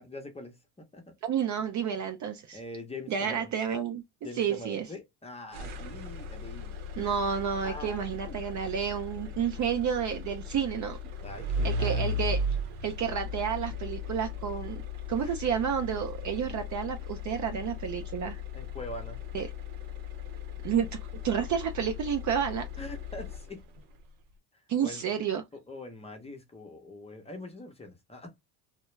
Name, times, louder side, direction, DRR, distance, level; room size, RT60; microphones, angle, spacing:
voice 1, 0.0-1.0 2.5-3.5 4.2-8.4 11.2-12.0 15.2-15.4 15.9-16.0 18.5-19.2 22.8-23.6 24.8-25.0 25.7-28.3, left 2 dB, 15° left, 0.7 m, -43 dB
voice 2, 1.2-2.6 3.1-4.0 4.3-4.9 7.0-11.0 11.6-12.4 12.8-14.8 15.1-18.4 19.3-19.5 20.6-21.0 21.2-22.7 24.7-25.4, right 8 dB, 40° right, 0.4 m, -30 dB
sound 1, 5.5-23.8, left 3 dB, 80° right, 0.8 m, -37 dB
2.2 x 2.1 x 3.0 m
supercardioid pair, 85°, 47 cm